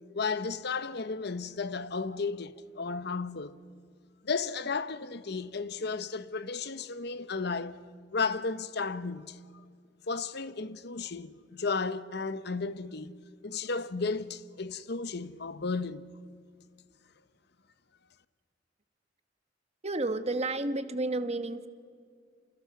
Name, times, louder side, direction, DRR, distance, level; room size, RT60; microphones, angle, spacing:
voice 1, 0.1-3.6 4.2-7.8 8.1-9.4 10.1-13.1 13.4-16.0, left 4 dB, 65° left, 0.9 m, -34 dB
voice 2, 19.8-21.7, right 2 dB, 35° right, 1.3 m, -31 dB
29.0 x 27.5 x 6.1 m
head